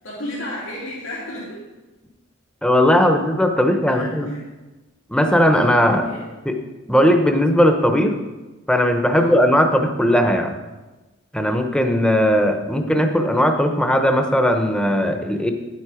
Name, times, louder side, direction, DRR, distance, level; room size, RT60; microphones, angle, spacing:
voice 1, 0.0-1.6 3.9-4.4 6.0-6.2 9.1-9.4, left 1 dB, 85° left, -6 dB, 2.9 m, -33 dB
voice 2, 2.6-4.3 5.1-6.1 6.4-6.5 6.9-8.1 8.7-10.5 11.3-15.5, equal, 5° left, 5 dB, 0.8 m, -18 dB
10.5 x 7.6 x 5.0 m, 1.1 s
head